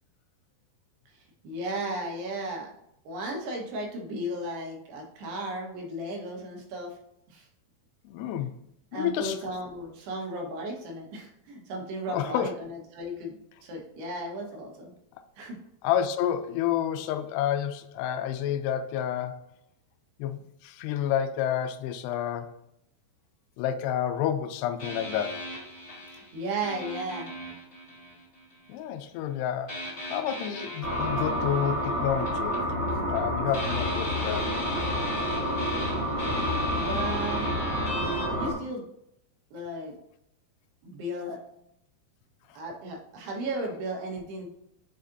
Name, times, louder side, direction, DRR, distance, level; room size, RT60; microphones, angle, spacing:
voice 1, 1.4-2.7 3.0-7.0 7.3-7.5 8.9-14.9 15.4-15.6 26.3-27.3 36.8-37.5 38.2-38.9 39.5-39.9 40.8-41.4 42.5-44.5, right 1 dB, 75° right, 3.4 m, -35 dB
voice 2, 8.0-8.6 8.9-9.4 12.1-12.5 15.8-19.5 20.2-22.5 23.6-25.5 28.7-29.8 30.1-32.6 32.9-34.6, left 10 dB, 85° left, 2.7 m, -29 dB
sound 1, 24.8-28.7 29.7-33.2 33.5-38.3, left 1 dB, 30° left, 2.0 m, -38 dB
sound 2, 30.8-38.5, equal, 25° right, 1.8 m, -29 dB
7.3 x 5.0 x 2.6 m
omnidirectional pair, 4.8 m